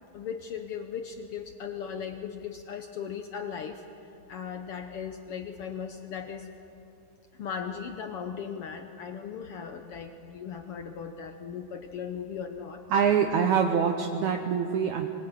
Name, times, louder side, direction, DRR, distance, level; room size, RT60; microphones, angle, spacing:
voice 1, 0.1-3.8 4.3-6.5 7.4-12.8, left 7 dB, 85° left, 6 dB, 1.2 m, -37 dB
voice 2, 12.9-15.1, right 7 dB, 70° right, 4 dB, 2.2 m, -24 dB
23.0 x 20.5 x 9.0 m, 2.9 s
omnidirectional pair, 3.8 m